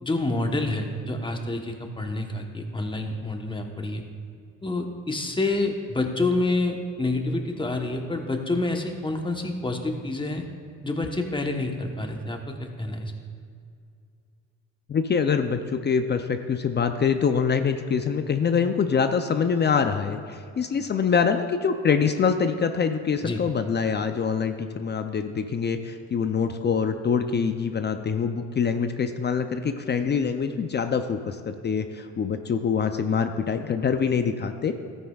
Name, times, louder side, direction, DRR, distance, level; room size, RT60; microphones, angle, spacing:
voice 1, 0.0-4.0 4.6-10.5 10.8-13.1 23.2-23.4, left 2 dB, 15° left, 3 dB, 1.0 m, -28 dB
voice 2, 14.9-34.7, left 6 dB, 35° left, 8 dB, 0.5 m, -25 dB
12.5 x 9.6 x 2.4 m, 2.4 s
cardioid pair, 90°, 30 cm